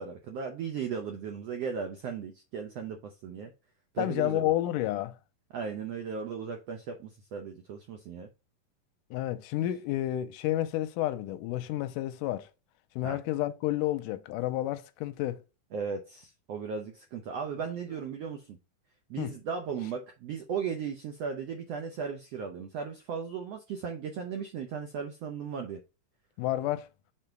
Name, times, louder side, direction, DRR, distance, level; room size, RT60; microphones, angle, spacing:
voice 1, 0.0-3.5 3.9-4.5 5.5-8.3 13.0-13.2 15.7-18.6 19.1-25.8, right 6 dB, 80° right, 1.4 m, -36 dB
voice 2, 4.0-5.2 9.1-12.5 13.0-15.4 19.2-19.3 26.4-26.9, left 14 dB, 80° left, 2.0 m, -30 dB
6.6 x 4.1 x 4.5 m
omnidirectional pair, 4.1 m